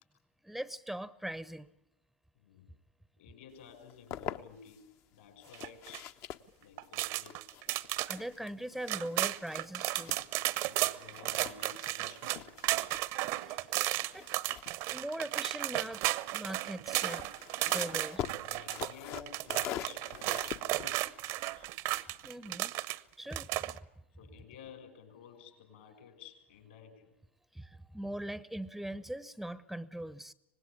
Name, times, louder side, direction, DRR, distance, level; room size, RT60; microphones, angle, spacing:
voice 1, 0.4-1.7 8.1-10.2 13.5-13.6 14.1-14.3 14.9-16.0 16.3-17.3 17.7-18.2 22.2-22.7 23.2-23.5 27.5-30.3, right 1 dB, ahead, 17 dB, 0.8 m, -40 dB
voice 2, 2.3-2.7 3.2-4.8 5.1-6.1 6.6-7.4 10.6-13.0 18.4-21.7 24.2-27.1, left 7 dB, 70° left, 6 dB, 6.4 m, -53 dB
sound 1, 3.7-4.8 5.4-10.8 11.1-15.7 16.7-22.3, left 10 dB, 45° left, 1.0 m, -45 dB
sound 2, 5.5-6.0 6.8-8.2 8.6-8.7 8.9-23.0 23.3-23.8, right 17 dB, 55° right, 1.0 m, -34 dB
25.5 x 19.5 x 8.4 m, 0.87 s
figure-of-eight pair, 85°, 7 cm